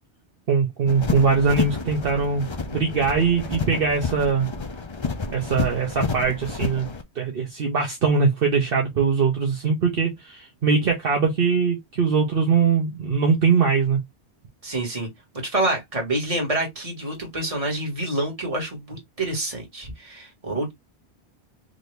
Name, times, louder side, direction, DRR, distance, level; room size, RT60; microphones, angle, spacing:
voice 1, 0.5-4.5 5.3-6.9 7.2-14.0, right 5 dB, 60° right, 1.1 m, -21 dB
sound 1, 0.9-7.0, left 4 dB, 30° left, 0.6 m, -30 dB
voice 2, 14.6-15.1 15.4-20.7, right 2 dB, 30° right, 1.8 m, -27 dB
3.9 x 2.7 x 3.2 m
omnidirectional pair, 1.1 m